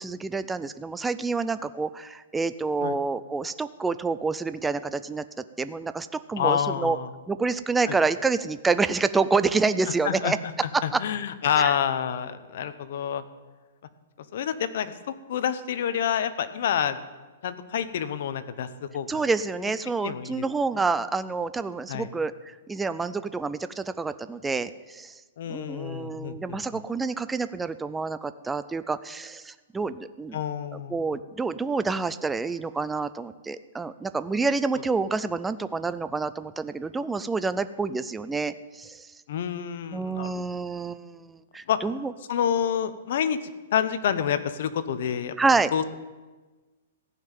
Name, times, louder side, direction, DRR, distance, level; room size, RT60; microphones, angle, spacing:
voice 1, 0.0-5.2 5.6-7.0 7.3-10.4 10.7-11.0 11.6-11.7 19.1-25.2 25.5-30.4 30.7-39.1 39.9-42.1 45.4-45.7, right 4 dB, 5° right, 13 dB, 0.3 m, -28 dB
voice 2, 6.4-7.1 7.9-8.0 10.0-10.3 10.8-13.2 14.3-14.9 15.3-17.0 17.4-19.2 20.0-20.4 20.8-20.9 21.9-22.1 25.4-26.6 30.3-31.0 39.3-40.4 41.7-41.9 42.3-43.4 43.7-45.3 45.7-46.0, left 8 dB, 50° left, 12 dB, 0.9 m, -28 dB
15.0 x 5.8 x 9.1 m, 1.2 s
hypercardioid pair, 170°, 0 cm